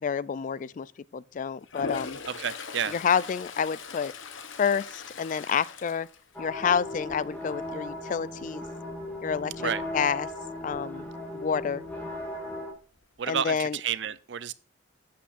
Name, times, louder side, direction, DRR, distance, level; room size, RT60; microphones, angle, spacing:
voice 1, 0.0-0.9 1.1-2.2 2.9-4.1 4.6-6.1 6.4-8.6 9.2-10.3 10.6-11.1 11.3-11.8 13.3-13.8, left 7 dB, 40° left, 0.3 m, -28 dB
Toilet flush, 1.6-6.8 7.2-7.6 12.1-12.2 12.4-13.2, left 4 dB, 85° left, 1.0 m, -40 dB
voice 2, 2.3-2.9 9.6-9.8 13.2-14.5, right 8 dB, 65° right, 0.5 m, -30 dB
sound 1, 6.3-12.7, left 1 dB, 10° left, 2.0 m, -37 dB
11.5 x 8.6 x 2.5 m
head